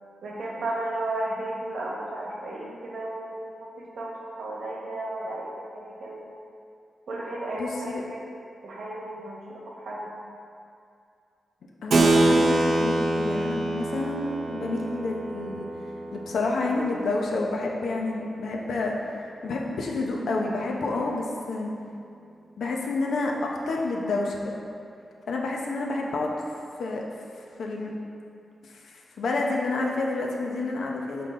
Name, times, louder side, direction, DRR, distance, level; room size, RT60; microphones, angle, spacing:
voice 1, 0.2-6.3 7.1-8.2 8.6-10.1, right 1 dB, 85° right, -3 dB, 1.2 m, -34 dB
voice 2, 7.6-8.0 11.8-15.7 16.1-18.9 19.4-21.7 22.6-24.6 25.3-26.3 26.8-27.0 27.4-27.9 28.6-31.3, left 3 dB, 80° left, -1 dB, 0.8 m, -29 dB
Keyboard (musical), 11.9-17.9, right 2 dB, 55° right, 0.5 m, -25 dB
7.4 x 3.9 x 3.8 m, 2.5 s
wide cardioid pair, 175°, 0 cm